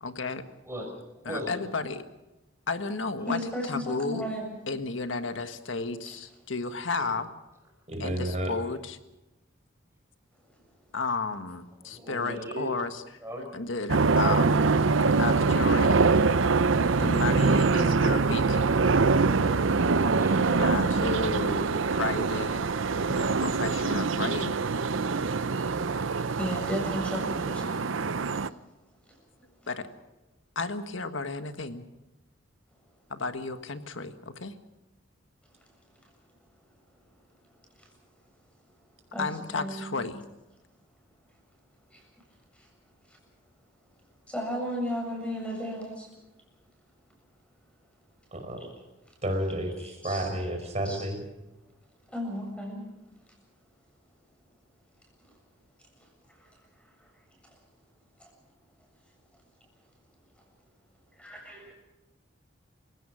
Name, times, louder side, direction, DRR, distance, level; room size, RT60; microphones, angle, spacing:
voice 1, 0.0-0.4 1.3-2.0 2.7-3.4 3.7-4.3 4.7-7.3 8.0-9.0 10.9-13.0 13.5-14.7 15.2-16.0 17.0-18.6 20.6-22.6 23.2-24.6 29.7-29.9 30.6-31.8 33.1-34.5 39.2-40.2, left 3 dB, 80° left, 9 dB, 1.6 m, -33 dB
voice 2, 0.6-1.6 11.8-12.8 13.2-13.5 20.2-21.2, equal, 15° right, 2 dB, 5.4 m, -38 dB
voice 3, 3.3-4.6 6.0-6.2 26.4-27.7 28.3-28.4 29.1-29.2 37.7-37.9 39.1-40.1 41.9-42.0 42.5-42.7 43.1-43.2 44.3-46.1 48.6-48.7 49.8-50.5 50.8-51.1 52.1-52.9 56.3-56.5 58.2-58.3 61.2-61.7, equal, 5° left, 0 dB, 7.6 m, -35 dB
voice 4, 7.9-8.5 48.3-48.7 49.2-49.7 50.0-51.2, right 1 dB, 35° right, 5 dB, 5.1 m, -30 dB
sound 1, 13.9-28.5, right 4 dB, 85° right, 0.7 m, -24 dB
28.5 x 16.5 x 6.4 m, 1.0 s
head